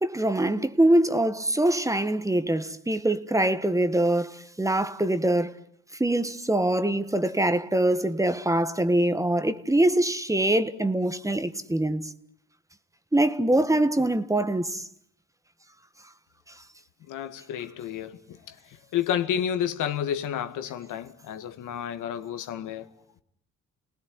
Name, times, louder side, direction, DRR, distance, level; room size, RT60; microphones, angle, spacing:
voice 1, 0.0-5.5 6.0-12.1 13.1-14.8, right 1 dB, 10° right, 1.6 m, -24 dB
voice 2, 17.1-18.6 18.9-22.9, left 9 dB, 85° left, 2.0 m, -30 dB
29.5 x 19.5 x 9.6 m
cardioid pair, 90°, 30 cm